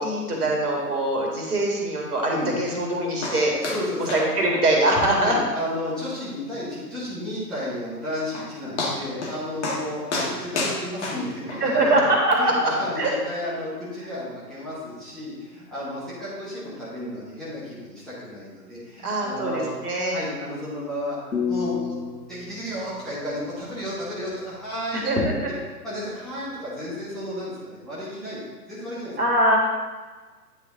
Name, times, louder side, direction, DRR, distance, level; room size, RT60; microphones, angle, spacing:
voice 1, 0.0-3.5 4.0-5.3 11.6-12.5 13.0-13.1 19.0-20.2 24.9-25.5 29.2-29.6, right 1 dB, 65° right, -1 dB, 2.0 m, -22 dB
sound 1, 3.2-3.4 3.6-3.8 4.1-4.3 4.5-4.6 5.1-5.2 5.6-5.7 6.1-6.2 7.9-8.0 8.3-8.5 8.8-9.4 9.6-9.8 10.1-11.6 12.3-12.4, left 3 dB, 45° left, 1.4 m, -29 dB
voice 2, 3.6-4.1 5.2-11.9 12.3-19.7 20.1-22.0 22.2-25.0 25.8-29.1, left 1 dB, ahead, -12 dB, 1.2 m, -32 dB
sound 2, 21.3-24.3, left 6 dB, 85° left, 1.1 m, -31 dB
9.6 x 3.3 x 3.8 m, 1.3 s
figure-of-eight pair, 130°, 50 cm